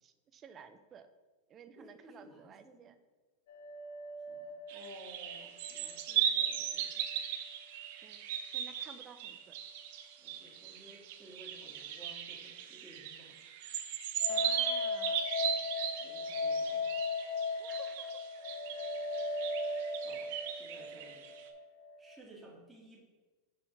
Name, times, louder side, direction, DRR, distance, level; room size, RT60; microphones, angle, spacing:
voice 1, 0.0-1.1 1.5-2.9 8.0-8.3 8.5-9.5 14.3-15.3 17.5-18.1, right 7 dB, 30° right, 9 dB, 0.6 m, -54 dB
voice 2, 1.8-2.9 4.2-7.1 10.2-13.4 15.5-15.6 16.0-17.0 20.0-21.4 22.0-23.0, right 1 dB, 10° right, -4 dB, 2.0 m, -57 dB
sound 1, 3.5-6.7 6.9-7.0 14.2-22.2, left 3 dB, 70° left, 0.7 m, -38 dB
sound 2, 4.7-21.4, right 9 dB, 65° right, 0.7 m, -38 dB
5.9 x 3.8 x 5.9 m, 1.3 s
supercardioid pair, 130°, 0 cm